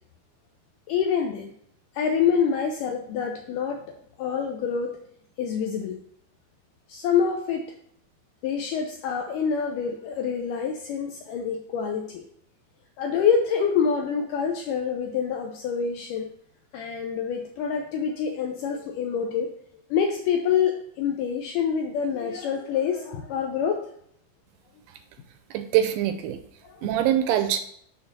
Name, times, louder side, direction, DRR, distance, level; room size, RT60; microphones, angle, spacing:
voice 1, 0.9-1.5 2.0-3.9 4.2-5.0 5.4-6.0 6.9-7.7 8.4-12.2 13.0-16.3 16.7-19.5 19.9-23.9 26.6-26.9, left 7 dB, 80° left, 2 dB, 1.9 m, -26 dB
voice 2, 25.5-26.4 26.8-27.6, right 11 dB, 80° right, 8 dB, 2.2 m, -23 dB
6.4 x 3.9 x 5.9 m, 0.67 s
omnidirectional pair, 4.4 m